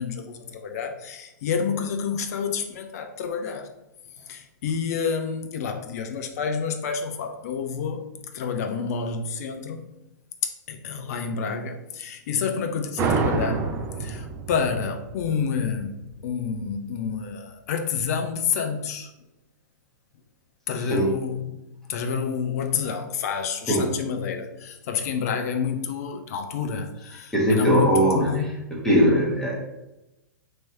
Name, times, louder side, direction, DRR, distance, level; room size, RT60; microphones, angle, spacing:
voice 1, 0.0-3.7 4.3-8.1 8.3-9.8 10.4-13.6 14.0-16.0 16.2-19.1 20.7-21.6 21.9-28.5, left 6 dB, 50° left, 5 dB, 0.6 m, -28 dB
sound 1, 13.0-16.3, right 4 dB, 25° right, 0.4 m, -28 dB
voice 2, 27.3-28.3 28.7-29.5, right 1 dB, 5° left, -4 dB, 1.2 m, -20 dB
3.1 x 3.0 x 4.3 m, 0.95 s
figure-of-eight pair, 105°, 10 cm